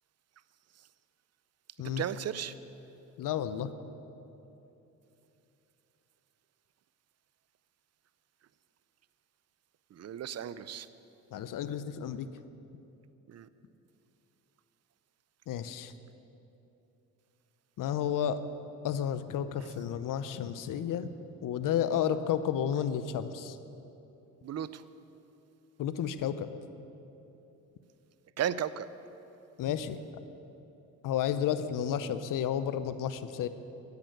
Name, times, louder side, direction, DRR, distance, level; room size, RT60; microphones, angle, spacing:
voice 1, 2.0-2.5 9.9-10.9 13.3-13.5 24.4-24.8 28.4-28.9, right 9 dB, 45° right, 15 dB, 0.6 m, -34 dB
voice 2, 3.2-3.7 11.3-12.3 15.5-15.9 17.8-18.4 18.8-21.1 21.4-23.6 25.8-26.6 29.6-30.0 31.0-33.5, left 9 dB, 60° left, 12 dB, 0.7 m, -31 dB
10.5 x 8.3 x 9.2 m, 3.0 s
supercardioid pair, 70°, 36 cm